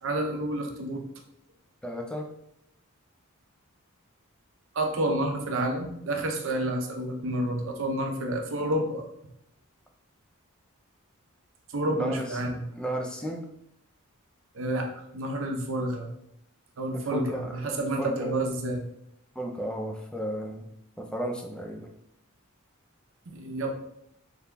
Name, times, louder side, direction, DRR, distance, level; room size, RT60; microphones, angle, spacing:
voice 1, 0.0-1.1 4.7-9.1 11.7-12.6 14.5-14.9 15.1-16.1 16.8-18.8 23.3-23.7, right 1 dB, 65° right, 3 dB, 0.6 m, -29 dB
voice 2, 1.8-2.3 11.9-12.3 12.7-13.5 16.9-17.5 18.0-18.3 19.4-20.7 21.0-21.9, right 1 dB, 5° left, 2 dB, 0.4 m, -33 dB
3.7 x 3.3 x 2.2 m, 0.76 s
head